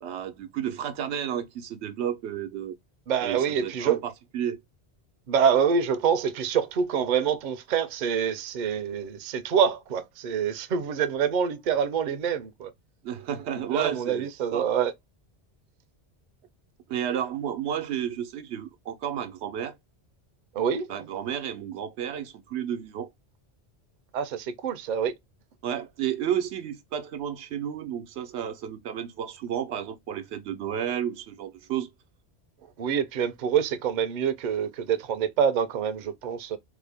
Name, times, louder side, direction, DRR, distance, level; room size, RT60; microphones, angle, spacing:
voice 1, 0.0-2.7 3.2-4.6 13.0-14.7 16.9-19.8 20.9-23.1 25.6-31.9, right 9 dB, 90° right, 0.9 m, -32 dB
voice 2, 3.1-4.0 5.3-12.7 13.7-14.9 20.5-20.9 24.1-25.1 32.8-36.6, right 7 dB, 55° right, 0.6 m, -26 dB
3.4 x 2.1 x 3.4 m
omnidirectional pair, 1.1 m